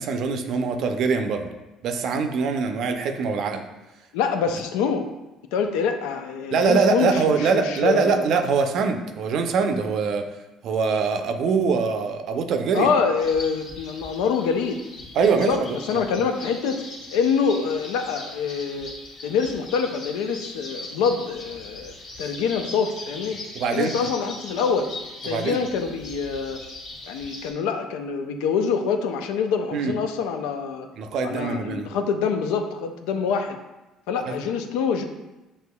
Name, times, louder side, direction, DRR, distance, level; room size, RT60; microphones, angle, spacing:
voice 1, 0.0-1.5 1.8-3.6 6.5-10.3 10.6-12.9 15.1-16.0 23.5-24.0 25.2-25.6 29.7-30.0 31.0-31.9 34.3-34.4, right 5 dB, 65° right, 6 dB, 0.5 m, -23 dB
voice 2, 4.1-5.1 5.5-8.2 12.7-14.8 15.5-15.6 15.9-16.8 17.1-18.9 19.2-21.9 22.2-23.4 23.7-24.9 25.2-26.6 27.1-30.9 31.2-33.5 34.1-35.0, left 6 dB, 80° left, 6 dB, 0.4 m, -25 dB
sound 1, 13.2-27.5, left 2 dB, 65° left, 1.1 m, -40 dB
6.3 x 2.9 x 2.2 m, 1.0 s
supercardioid pair, 75°, 0 cm